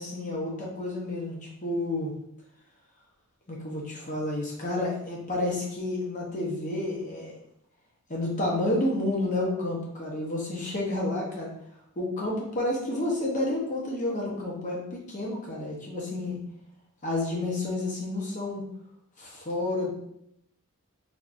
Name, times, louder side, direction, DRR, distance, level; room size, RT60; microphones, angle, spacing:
voice 1, 0.0-2.1 3.5-7.4 8.1-11.5 12.0-16.4 17.0-18.7 19.2-19.9, left 2 dB, 35° left, -2 dB, 0.8 m, -30 dB
3.5 x 2.6 x 2.5 m, 0.74 s
head